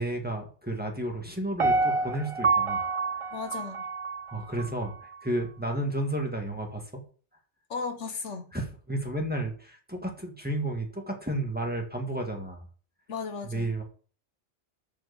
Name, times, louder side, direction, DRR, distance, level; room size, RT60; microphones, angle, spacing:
voice 1, 0.0-2.9 4.3-7.0 8.5-12.7 13.4-13.8, right 1 dB, 10° right, 1.6 m, -32 dB
Piano, 1.6-4.7 5.1-5.2, right 4 dB, 40° right, 0.4 m, -27 dB
voice 2, 3.3-3.8 7.7-8.5 13.1-13.7, left 4 dB, 80° left, 1.6 m, -35 dB
7.0 x 5.9 x 6.5 m
omnidirectional pair, 1.2 m